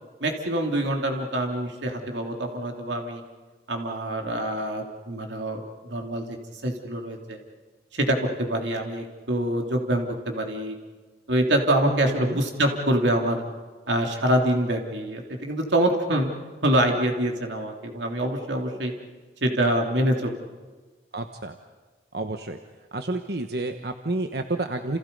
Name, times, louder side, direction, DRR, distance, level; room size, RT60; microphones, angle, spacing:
voice 1, 0.2-3.2 3.7-6.2 6.6-7.4 7.9-10.8 11.3-13.4 13.9-16.3 16.6-18.9 19.4-20.4, right 1 dB, 90° right, 2 dB, 3.1 m, -25 dB
voice 2, 11.8-12.4 21.1-21.5 22.1-22.6 22.9-25.0, right 2 dB, 60° right, 6 dB, 1.2 m, -30 dB
30.0 x 29.0 x 5.4 m, 1.4 s
head